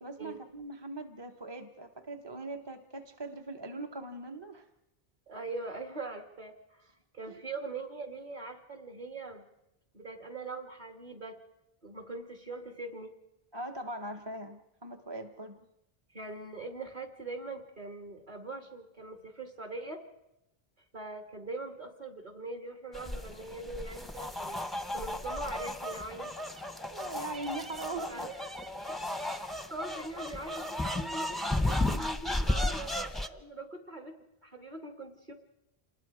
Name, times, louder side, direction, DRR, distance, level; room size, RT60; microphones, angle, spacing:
voice 1, 0.0-4.7 7.3-7.4 13.5-15.6 26.9-28.2, right 2 dB, 25° right, 4 dB, 1.0 m, -41 dB
voice 2, 5.3-9.4 9.9-11.4 11.8-13.1 16.1-20.0 20.9-24.7 24.9-26.3 28.1-28.4 28.9-29.0 29.2-34.1 34.4-35.3, right 2 dB, 45° right, 4 dB, 2.5 m, -42 dB
sound 1, 22.9-33.3, left 1 dB, ahead, 0.7 m, -34 dB
27.5 x 20.5 x 4.9 m, 0.88 s
omnidirectional pair, 1.1 m